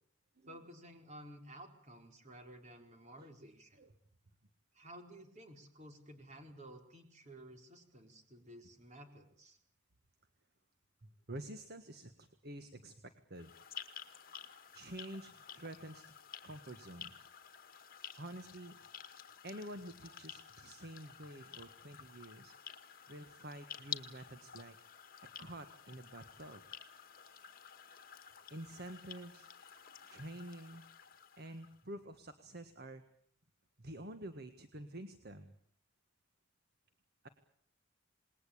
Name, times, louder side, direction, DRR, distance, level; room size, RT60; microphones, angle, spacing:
voice 1, 0.5-3.8 4.7-9.6, right 1 dB, 35° right, 4 dB, 4.4 m, -54 dB
voice 2, 3.2-3.5 3.8-4.0 11.0-13.5 14.7-16.1 16.4-17.3 18.2-18.8 19.4-22.5 23.1-24.8 25.4-26.6 28.5-29.5 30.1-30.8 31.4-33.0 33.8-35.5 37.2-37.3, right 1 dB, 50° right, 9 dB, 1.6 m, -49 dB
sound 1, 13.3-31.8, left 8 dB, 45° left, 2.0 m, -51 dB
28.0 x 20.5 x 8.7 m, 0.67 s
head